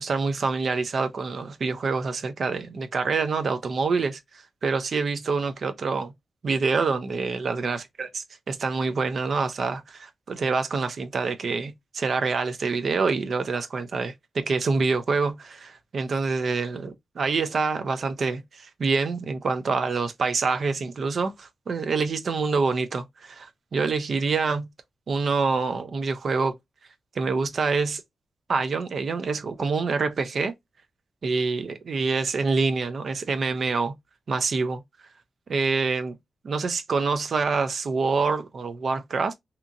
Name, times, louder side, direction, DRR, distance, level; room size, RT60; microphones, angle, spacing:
voice 1, 0.0-4.2 4.6-6.1 6.4-8.1 8.5-24.7 25.1-26.5 27.2-28.0 28.5-30.5 31.2-33.9 34.3-34.8 35.5-36.2 36.4-39.3, right 4 dB, 55° right, 0.4 m, -26 dB
2.8 x 2.5 x 2.3 m
wide cardioid pair, 145°, 0 cm